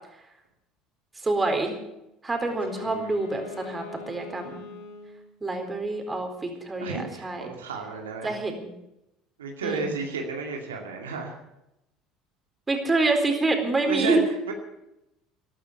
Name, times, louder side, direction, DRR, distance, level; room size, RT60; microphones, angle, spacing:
voice 1, 1.2-1.8 2.2-4.7 5.4-7.5 8.2-8.7 9.6-9.8 12.7-14.2, right 3 dB, 20° right, 4 dB, 4.1 m, -26 dB
Wind instrument woodwind instrument, 2.4-5.3, left 6 dB, 70° left, 2.2 m, -42 dB
voice 2, 2.8-3.2 6.8-8.3 9.4-11.4 13.8-14.2 14.5-14.6, right 4 dB, 90° right, 2 dB, 2.3 m, -32 dB
14.0 x 11.5 x 8.3 m, 0.87 s
hypercardioid pair, 70°, 0 cm